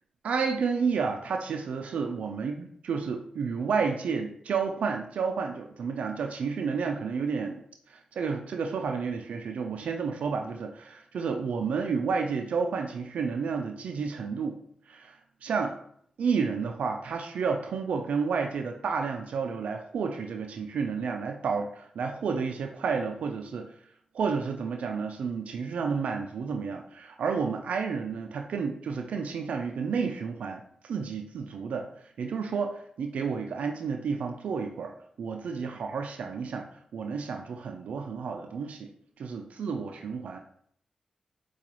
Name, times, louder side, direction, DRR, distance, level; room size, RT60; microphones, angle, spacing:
voice 1, 0.2-7.6 7.9-14.6 14.9-15.2 15.4-15.8 16.2-23.7 24.1-31.9 32.2-38.9 39.2-40.4, right 5 dB, 80° right, 4 dB, 0.3 m, -31 dB
4.7 x 2.3 x 2.9 m, 0.64 s
cardioid pair, 55°, 2 cm